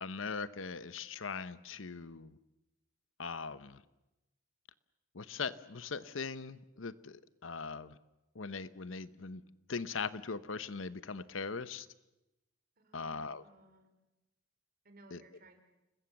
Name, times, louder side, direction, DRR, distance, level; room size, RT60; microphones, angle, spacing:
voice 1, 0.0-2.4 3.2-3.8 5.1-8.0 8.3-9.4 9.7-11.9 12.9-13.4 15.1-15.2, left 5 dB, 75° left, 0.9 m, -40 dB
voice 2, 12.8-14.0 14.8-15.6, right 2 dB, 50° right, 4.2 m, -60 dB
30.0 x 21.0 x 7.2 m
head